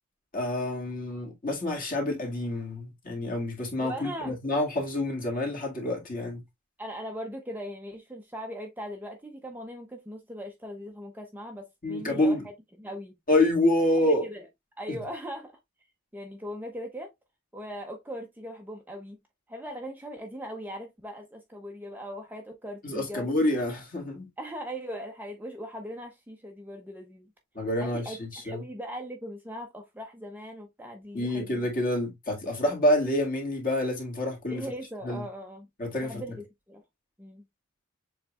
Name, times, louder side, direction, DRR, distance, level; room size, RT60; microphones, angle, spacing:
voice 1, 0.3-6.4 11.8-12.5 13.3-14.2 14.9-15.0 22.8-24.3 27.6-28.6 31.1-34.6 35.0-35.2 35.8-36.2, left 1 dB, 40° left, 2.0 m, -27 dB
voice 2, 3.8-4.3 6.8-12.4 12.8-13.2 14.0-14.5 14.8-15.5 16.1-17.1 17.5-19.2 19.5-23.3 24.4-27.3 27.8-31.7 34.5-35.7 36.0-36.8 37.2-37.4, equal, 10° right, 0.6 m, -39 dB
7.1 x 3.2 x 2.3 m
head